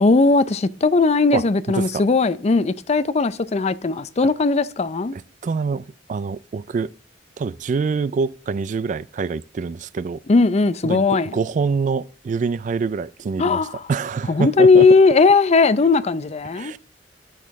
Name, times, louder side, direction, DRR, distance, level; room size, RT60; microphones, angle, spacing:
voice 1, 0.0-5.2 10.3-11.4 13.4-13.8 14.3-16.7, left 4 dB, 40° left, 0.5 m, -17 dB
voice 2, 1.3-2.0 5.1-6.9 7.4-10.2 10.8-14.9 16.5-16.8, right 5 dB, 45° right, 0.3 m, -25 dB
10.5 x 6.5 x 3.6 m
head